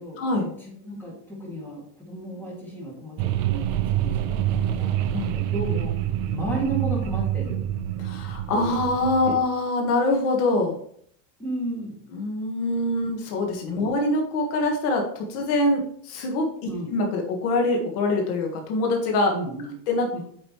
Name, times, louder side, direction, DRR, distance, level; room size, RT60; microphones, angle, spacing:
voice 1, 0.0-5.0 5.3-5.9 6.3-7.6 9.2-9.3 11.4-12.0 13.7-13.9 16.6-16.9 19.3-19.7 20.1-20.2, right 1 dB, 5° left, -5 dB, 2.3 m, -34 dB
sound 1, 3.2-9.4, right 11 dB, 40° right, 0.5 m, -26 dB
voice 2, 8.0-10.7 12.1-16.5 16.9-19.3 19.9-20.1, left 2 dB, 70° left, 2 dB, 1.7 m, -24 dB
8.8 x 5.3 x 3.1 m, 0.63 s
cardioid pair, 170°, 47 cm